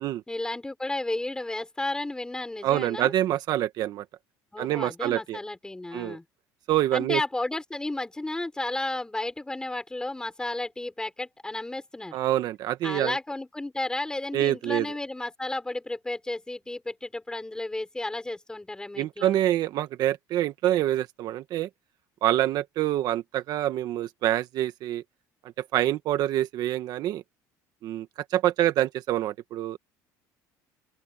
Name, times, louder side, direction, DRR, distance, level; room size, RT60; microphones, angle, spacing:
voice 1, 0.3-3.1 4.5-6.2 6.9-12.2 12.8-19.4, left 2 dB, 10° left, 6.0 m, -33 dB
voice 2, 2.6-4.0 4.6-5.4 5.9-6.2 6.7-7.2 12.1-13.2 14.3-14.9 19.0-21.7 22.2-25.0 25.4-27.2 27.8-29.8, right 13 dB, 60° right, 1.4 m, -26 dB
open air
cardioid pair, 115°, 8 cm